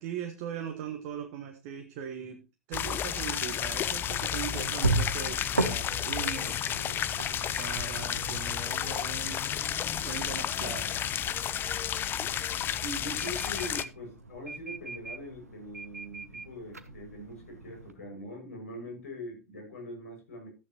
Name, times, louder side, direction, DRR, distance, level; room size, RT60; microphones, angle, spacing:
voice 1, 0.0-2.4 2.7-7.0 7.6-9.4 10.0-11.0, right 9 dB, 45° right, 5 dB, 1.5 m, -40 dB
sound 1, 2.7-13.8, left 10 dB, 25° left, 0.6 m, -32 dB
sound 2, 4.5-17.9, right 2 dB, 80° right, 1.2 m, -37 dB
voice 2, 12.8-20.5, equal, 65° left, 2 dB, 6.3 m, -42 dB
14.0 x 9.3 x 3.0 m, 0.28 s
figure-of-eight pair, 90°, 8 cm